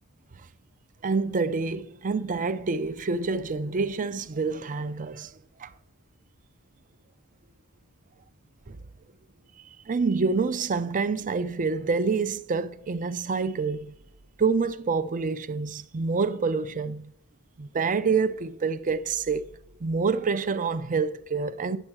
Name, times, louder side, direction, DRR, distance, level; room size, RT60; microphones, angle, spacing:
voice 1, 1.0-5.3 5.6-5.7 8.7-8.8 9.9-14.0 14.4-17.1 17.6-19.5 19.8-21.8, right 4 dB, 35° right, 0.5 m, -27 dB
10.0 x 7.2 x 4.6 m
head